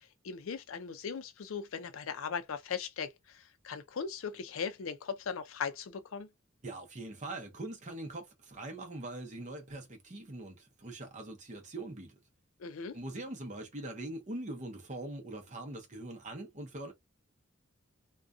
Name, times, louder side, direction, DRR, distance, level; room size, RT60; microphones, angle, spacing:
voice 1, 0.2-6.3 12.6-13.0, left 6 dB, 70° left, 0.4 m, -38 dB
voice 2, 6.6-12.1 12.9-16.9, right 2 dB, 35° right, 0.7 m, -42 dB
2.5 x 2.2 x 2.4 m
head